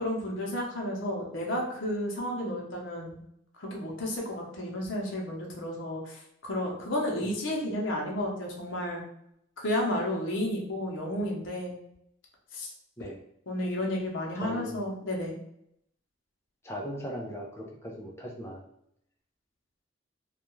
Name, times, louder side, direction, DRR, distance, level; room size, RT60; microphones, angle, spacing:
voice 1, 0.0-3.2 3.6-9.0 9.6-11.8 12.5-12.7 13.5-15.4, left 1 dB, 70° left, -1 dB, 0.7 m, -32 dB
voice 2, 14.3-14.9 16.6-18.6, equal, 15° left, -1 dB, 0.4 m, -38 dB
2.3 x 2.2 x 2.9 m, 0.75 s
head